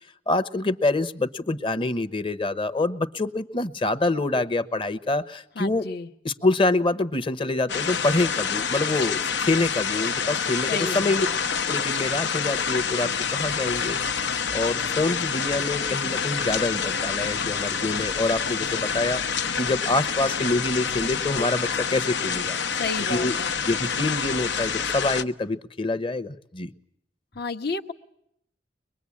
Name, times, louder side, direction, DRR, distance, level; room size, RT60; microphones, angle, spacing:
voice 1, 0.3-5.9 6.2-11.3 11.7-22.6 23.1-23.4 23.7-26.7, left 2 dB, 30° left, 12 dB, 0.9 m, -26 dB
voice 2, 5.6-6.1 10.7-11.4 22.7-23.5 27.3-27.9, left 3 dB, 65° left, 6 dB, 1.2 m, -31 dB
sound 1, 7.7-25.2, left 6 dB, 80° left, 0.9 m, -27 dB
23.5 x 21.5 x 8.5 m, 0.74 s
head